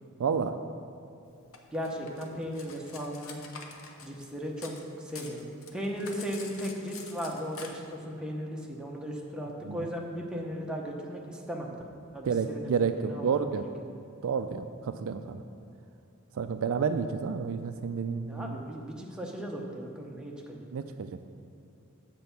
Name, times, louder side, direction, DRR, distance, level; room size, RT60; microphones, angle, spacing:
voice 1, 0.2-0.6 9.7-9.8 12.2-13.6 14.2-15.4 16.4-18.6 20.7-21.1, right 6 dB, 65° right, 9 dB, 0.4 m, -30 dB
Cutlery silverware, 1.5-4.8 5.1-7.7, left 5 dB, 65° left, 0.8 m, -46 dB
voice 2, 1.7-3.4 4.0-11.7 12.1-12.7 13.0-13.4 18.3-20.6, equal, 5° right, -2 dB, 0.8 m, -36 dB
7.8 x 4.5 x 6.8 m, 2.6 s
head